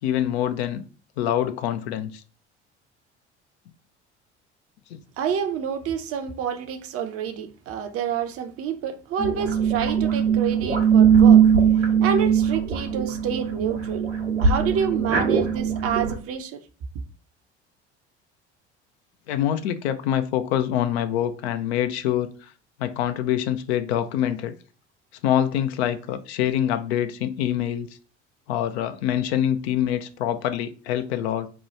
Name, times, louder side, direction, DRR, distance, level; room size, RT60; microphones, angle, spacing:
voice 1, 0.0-0.8 1.2-2.2 4.9-5.0 19.3-22.5 22.8-24.5 25.2-27.9 28.5-31.5, left 10 dB, 65° left, 0.5 m, -25 dB
voice 2, 5.2-11.4 12.0-14.0 14.4-16.6, right 7 dB, 40° right, 0.5 m, -28 dB
sound 1, 9.2-16.1, right 7 dB, 85° right, 0.9 m, -20 dB
3.0 x 2.2 x 4.0 m
figure-of-eight pair, 60°, 34 cm